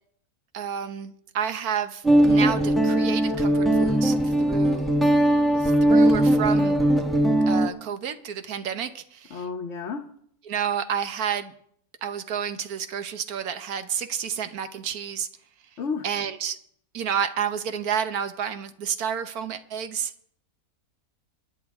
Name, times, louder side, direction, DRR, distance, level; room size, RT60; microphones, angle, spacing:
voice 1, 0.5-4.9 5.6-6.8 7.5-9.5 10.5-11.5 12.0-15.3 15.7-15.8 16.0-16.6 16.9-20.1, right 8 dB, 80° right, 9 dB, 1.4 m, -30 dB
Guitar, 2.0-7.7, right 1 dB, ahead, 1.2 m, -20 dB
voice 2, 9.3-10.0 15.8-16.1, left 5 dB, 55° left, 1 dB, 1.2 m, -31 dB
23.0 x 10.5 x 3.5 m, 0.66 s
omnidirectional pair, 1.6 m